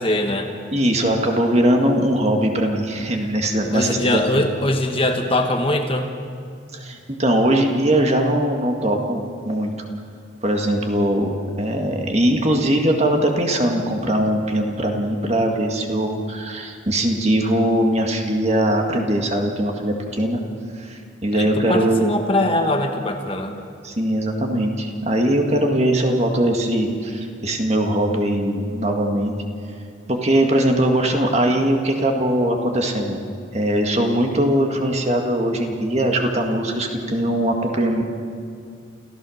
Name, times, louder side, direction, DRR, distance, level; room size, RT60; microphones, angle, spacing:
voice 1, 0.0-0.5 3.7-6.1 21.3-23.6, left 1 dB, 30° left, 5 dB, 1.2 m, -22 dB
voice 2, 0.7-4.4 6.7-9.7 10.4-20.4 20.8-22.1 23.8-29.3 30.1-33.2 33.5-38.0, right 1 dB, 35° right, 2 dB, 1.9 m, -21 dB
27.5 x 15.0 x 6.5 m, 2.3 s
head